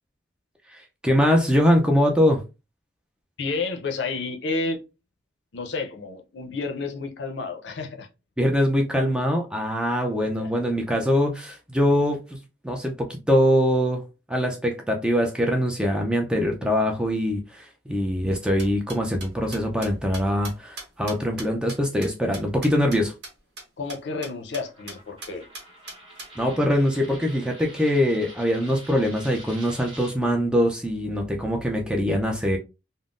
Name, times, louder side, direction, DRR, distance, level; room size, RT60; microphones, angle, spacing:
voice 1, 0.7-2.4 8.4-12.4 12.6-14.0 14.3-23.1 26.4-32.6, equal, 5° right, 0.3 m, -23 dB
voice 2, 3.4-4.8 5.5-8.1 10.4-10.5 23.8-25.4, left 3 dB, 70° left, 0.5 m, -30 dB
sound 1, 18.3-23.0 23.2-23.3 23.6-23.7 23.9-24.0 24.2-24.6 24.9-25.0 25.2-26.3, right 2 dB, 60° right, 1.1 m, -39 dB
Coin (dropping), 24.6-30.1, right 1 dB, 25° right, 0.9 m, -46 dB
3.6 x 2.0 x 2.4 m
head